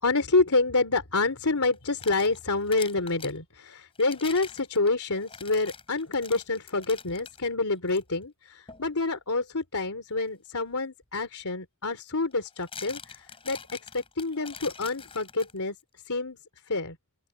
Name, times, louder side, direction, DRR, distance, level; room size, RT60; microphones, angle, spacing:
voice 1, 0.0-13.6 13.9-15.7 16.1-16.4 16.7-17.0, left 3 dB, 85° left, 3.1 m, -27 dB
sound 1, 1.7-3.4 4.0-7.4 7.9-8.0 8.7-8.9 11.0-11.1 12.3-15.8, left 6 dB, 25° left, 7.8 m, -44 dB
open air
head